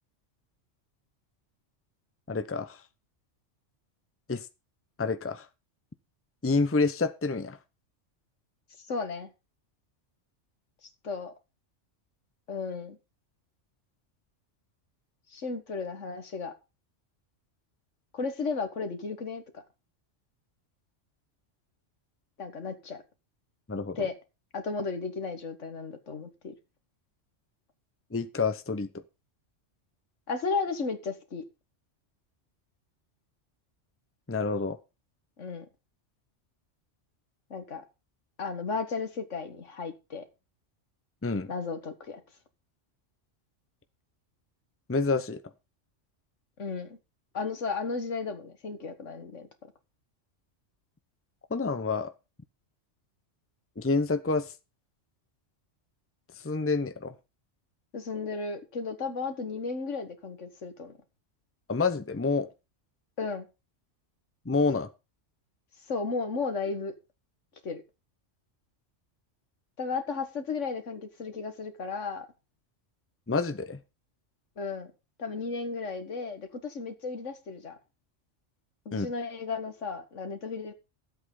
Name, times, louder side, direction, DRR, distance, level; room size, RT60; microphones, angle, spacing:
voice 1, 2.3-2.8 4.3-4.4 5.0-5.5 6.4-7.6 23.7-24.0 28.1-28.9 34.3-34.8 41.2-41.5 44.9-45.4 51.5-52.1 53.8-54.5 56.4-57.1 61.7-62.5 64.5-64.9 73.3-73.8 78.9-79.1, left 4 dB, 15° left, 0.7 m, -28 dB
voice 2, 8.8-9.3 11.0-11.3 12.5-13.0 15.3-16.5 18.1-19.6 22.4-23.0 24.0-24.2 24.5-26.5 30.3-31.4 35.4-35.7 37.5-37.8 38.4-40.3 41.5-42.2 46.6-47.0 47.3-49.5 57.9-60.9 63.2-63.5 65.9-66.9 67.6-67.8 69.8-72.3 74.6-74.9 75.2-77.8 78.9-80.7, left 4 dB, 75° left, 2.0 m, -34 dB
12.5 x 8.1 x 5.4 m
omnidirectional pair, 1.3 m